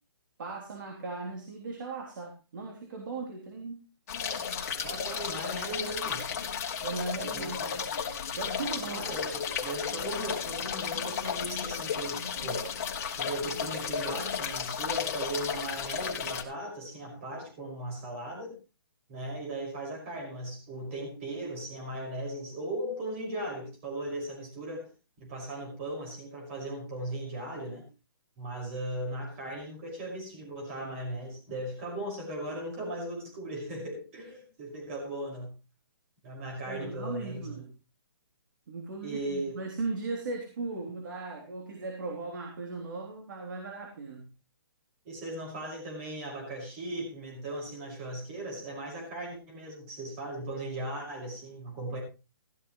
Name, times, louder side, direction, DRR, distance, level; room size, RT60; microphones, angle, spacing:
voice 1, 0.4-3.8 6.8-7.6 8.4-9.1 36.7-37.7 38.7-44.3, right 3 dB, 55° right, 2 dB, 3.5 m, -37 dB
sound 1, 4.1-16.4, left 7 dB, 40° left, 2.6 m, -34 dB
voice 2, 4.8-6.3 7.3-7.9 8.8-12.7 13.2-18.6 19.1-24.9 25.2-27.8 28.4-35.5 36.2-37.6 39.0-39.6 45.0-52.0, right 1 dB, 30° right, -1 dB, 5.9 m, -38 dB
15.5 x 14.0 x 3.2 m, 0.30 s
hypercardioid pair, 160°, 13 cm